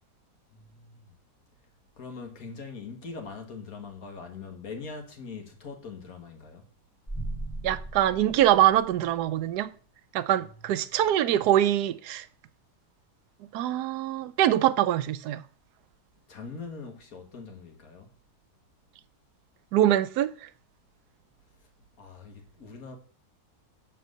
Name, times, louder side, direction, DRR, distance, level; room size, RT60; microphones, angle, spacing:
voice 1, 0.5-1.1 2.0-6.7 10.4-10.8 16.3-18.1 22.0-23.0, left 4 dB, 65° left, 1.9 m, -42 dB
sound 1, 7.1-9.3, right 1 dB, 10° left, 0.9 m, -38 dB
voice 2, 7.6-9.7 10.1-12.3 13.5-15.4 19.7-20.5, right 12 dB, 85° right, 1.1 m, -24 dB
7.6 x 4.5 x 6.5 m
omnidirectional pair, 1.6 m